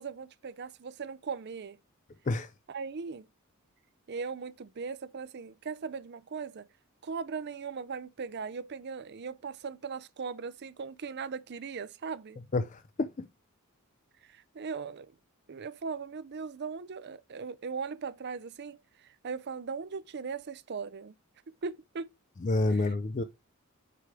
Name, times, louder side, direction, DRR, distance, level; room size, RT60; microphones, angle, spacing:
voice 1, 0.0-1.8 2.7-3.3 4.1-6.7 7.0-12.4 14.2-15.1 15.5-21.2 21.6-22.1 22.7-22.9, right 5 dB, 50° right, 0.5 m, -39 dB
voice 2, 12.5-13.1 22.4-23.2, left 2 dB, 35° left, 0.4 m, -28 dB
4.8 x 4.8 x 5.9 m
head